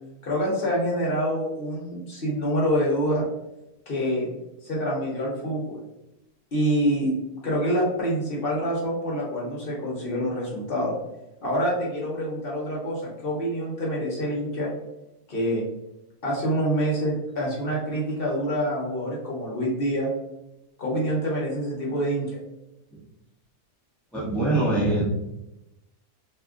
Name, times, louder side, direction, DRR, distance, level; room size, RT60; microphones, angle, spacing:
voice 1, 0.2-3.3 3.9-4.3 4.6-5.8 6.5-7.1 7.4-10.9 11.4-14.7 15.3-15.7 16.2-20.1 20.8-22.4, equal, 45° left, -3 dB, 0.9 m, -26 dB
voice 2, 24.1-25.0, right 2 dB, ahead, -6 dB, 0.3 m, -23 dB
2.8 x 2.4 x 3.5 m, 0.92 s
omnidirectional pair, 1.6 m